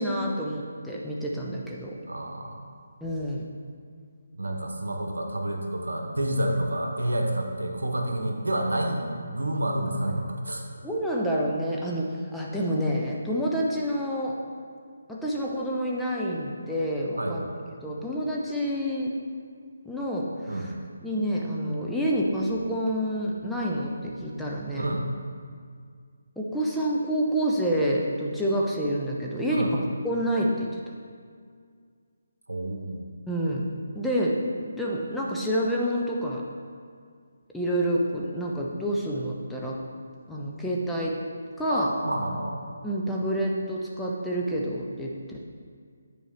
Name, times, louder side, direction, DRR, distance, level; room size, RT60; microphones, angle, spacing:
voice 1, 0.0-1.9 3.0-3.4 10.8-14.4 15.1-17.4 17.8-19.1 19.8-20.7 21.0-24.9 26.4-30.7 33.3-33.7 33.9-34.4 34.7-36.4 37.5-39.8 40.3-41.2 41.6-41.9 42.8-45.4, equal, 5° left, -4 dB, 0.7 m, -28 dB
voice 2, 2.1-2.7 4.4-10.6 17.2-17.4 20.5-20.7 24.8-25.0 29.5-29.7 32.5-33.1 41.7-42.7, right 1 dB, 85° right, 3 dB, 1.1 m, -29 dB
9.3 x 4.7 x 4.5 m, 2.1 s
figure-of-eight pair, 155°, 0 cm